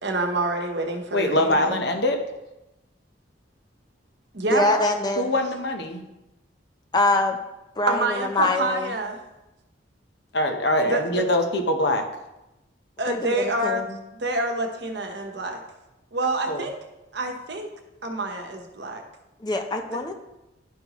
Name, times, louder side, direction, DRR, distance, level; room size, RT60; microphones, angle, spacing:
voice 1, 0.0-1.8 4.3-4.7 7.9-9.2 10.8-11.2 13.0-13.8 14.1-15.6 16.1-16.7 17.1-17.7 18.0-19.0, right 2 dB, 60° right, 4 dB, 1.0 m, -27 dB
voice 2, 1.1-2.2 5.2-6.0 10.3-12.1 16.5-16.6, left 1 dB, 60° left, 5 dB, 0.9 m, -23 dB
voice 3, 4.5-5.3 6.9-7.4 7.8-8.9 13.1-14.0 19.4-20.1, left 2 dB, 20° left, 4 dB, 0.5 m, -24 dB
11.0 x 5.3 x 3.0 m, 0.96 s
head